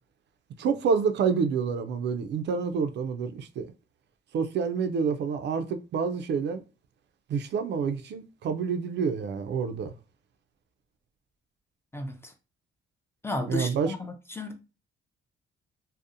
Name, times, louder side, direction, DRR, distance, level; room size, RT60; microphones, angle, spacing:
voice 1, 0.6-3.7 4.3-6.6 7.3-9.9 13.5-13.9, right 6 dB, 60° right, 0.4 m, -28 dB
voice 2, 11.9-12.3 13.2-14.6, left 1 dB, 10° left, 0.4 m, -34 dB
2.7 x 2.0 x 2.4 m
cardioid pair, 90°, 20 cm